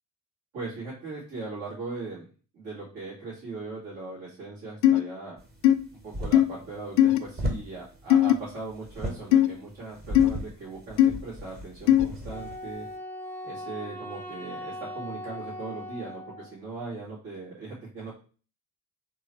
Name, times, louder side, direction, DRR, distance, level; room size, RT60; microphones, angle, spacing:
voice 1, 0.5-2.3 2.5-5.4 6.0-12.9 13.4-18.1, right 3 dB, 70° right, -10 dB, 2.1 m, -39 dB
sound 1, 4.8-5.0 5.6-5.8 6.3-6.5 7.0-7.2 8.1-8.3 9.3-9.5 10.1-10.3 11.0-11.1 11.9-12.1, left 12 dB, 55° left, 0.5 m, -18 dB
sound 2, 5.4-13.0, equal, 20° right, 1.0 m, -37 dB
Wind instrument woodwind instrument, 12.3-16.6, left 1 dB, 5° left, 0.6 m, -39 dB
3.7 x 3.1 x 3.2 m, 0.38 s
figure-of-eight pair, 50°, 49 cm